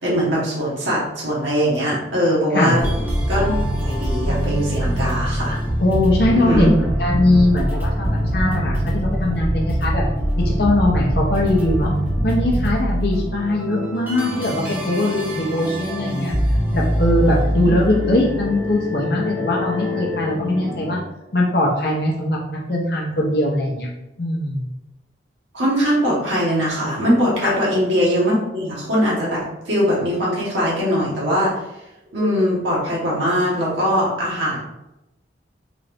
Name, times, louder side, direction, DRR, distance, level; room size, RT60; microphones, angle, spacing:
voice 1, 0.0-2.9 3.3-3.5 3.8-5.6 6.3-6.7 17.6-17.7 25.5-31.5 32.1-34.6, equal, 80° right, -6 dB, 1.3 m, -21 dB
sound 1, 2.8-21.0, equal, 10° right, 0.9 m, -23 dB
voice 2, 5.8-6.7 7.0-10.0 10.4-11.9 12.2-16.3 16.7-21.0 21.3-23.9 24.2-24.6 27.4-27.5, left 1 dB, 55° left, -2 dB, 0.7 m, -20 dB
3.9 x 2.5 x 3.4 m, 0.94 s
head